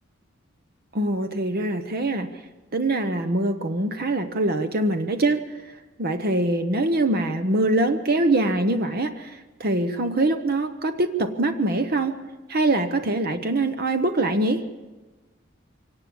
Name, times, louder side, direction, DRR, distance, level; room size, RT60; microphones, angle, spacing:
voice 1, 0.9-2.3 2.7-5.6 6.0-12.2 12.5-14.7, right 2 dB, 50° right, 7 dB, 1.0 m, -23 dB
24.5 x 17.5 x 7.1 m, 1.2 s
head